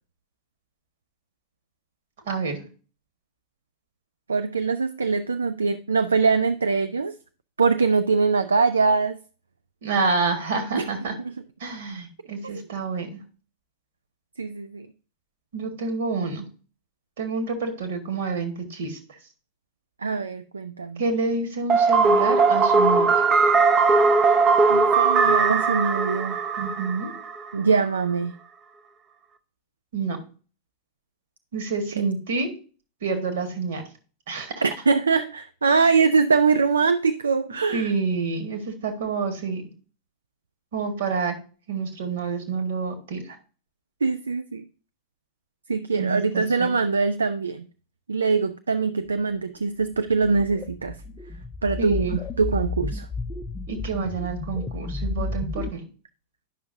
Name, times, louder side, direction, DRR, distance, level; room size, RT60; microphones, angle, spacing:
voice 1, 2.3-2.7 9.8-11.1 11.6-13.1 15.5-16.4 17.2-19.0 21.0-23.3 26.6-27.1 29.9-30.2 31.5-32.5 33.0-33.8 34.3-34.6 37.7-39.6 40.7-41.4 41.7-43.4 45.9-46.8 51.8-52.2 53.7-55.8, right 4 dB, 60° right, 1.6 m, -28 dB
voice 2, 4.3-7.1 7.6-9.2 10.7-10.9 11.2-11.3 12.4-12.6 14.4-14.9 20.0-21.0 24.7-26.5 27.5-28.3 34.6-37.9 44.0-44.7 45.7-47.7 48.1-51.0 51.6-53.1, right 4 dB, 75° right, 0.3 m, -23 dB
sound 1, 21.7-27.5, right 4 dB, 30° right, 0.6 m, -19 dB
sound 2, 49.9-55.7, left 3 dB, 20° left, 0.5 m, -32 dB
10.5 x 5.7 x 2.6 m
figure-of-eight pair, 90°, 0 cm